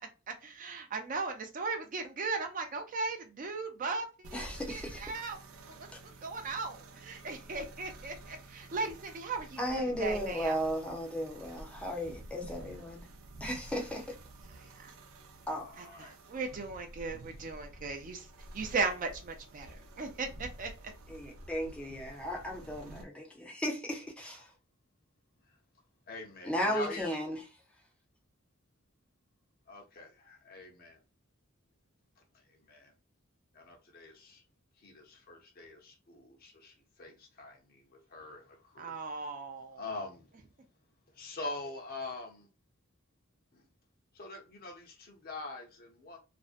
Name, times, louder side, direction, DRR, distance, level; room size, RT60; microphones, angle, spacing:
voice 1, 0.3-5.4 6.2-10.6 14.8-14.9 15.8-18.3 18.5-20.7 38.8-39.8, right 4 dB, 40° right, 0.4 m, -37 dB
sound 1, 4.2-23.1, right 2 dB, 90° right, 0.5 m, -50 dB
voice 2, 4.3-5.0 9.6-13.1 13.4-14.1 15.5-15.6 21.1-24.5 26.4-27.4, equal, 5° left, 0.6 m, -35 dB
voice 3, 15.5-16.2 18.5-18.6 25.4-25.6 26.1-27.2 29.7-31.0 32.2-32.9 33.5-34.4 34.7-39.3 39.7-40.4 41.1-42.5 43.5-43.7 44.1-46.2, left 2 dB, 45° left, 0.7 m, -45 dB
2.5 x 2.1 x 2.4 m
head